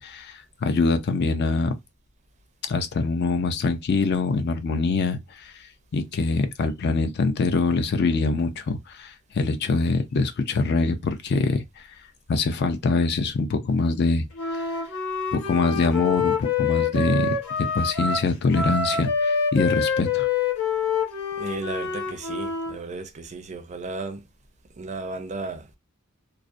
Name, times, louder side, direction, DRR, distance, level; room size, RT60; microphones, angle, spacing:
voice 1, 0.0-1.7 2.7-5.5 5.9-11.6 12.3-14.3 14.5-14.6 15.3-17.3 17.7-20.3, left 3 dB, 55° left, 0.4 m, -24 dB
Wind instrument woodwind instrument, 14.4-22.8, left 5 dB, 90° left, 0.8 m, -26 dB
voice 2, 21.4-24.2 24.8-25.8, right 3 dB, 35° right, 0.4 m, -34 dB
2.4 x 2.0 x 2.5 m
head